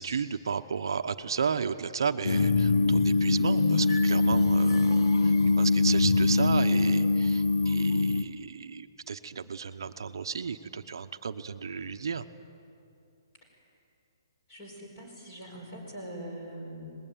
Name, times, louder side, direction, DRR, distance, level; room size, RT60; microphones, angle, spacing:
voice 1, 0.0-12.3, right 6 dB, 65° right, 8 dB, 0.9 m, -33 dB
sound 1, 2.2-8.2, left 3 dB, 65° left, 1.1 m, -23 dB
voice 2, 14.5-16.9, right 1 dB, 20° left, 0 dB, 4.9 m, -42 dB
24.0 x 20.5 x 9.1 m, 2.6 s
hypercardioid pair, 180°, 2 cm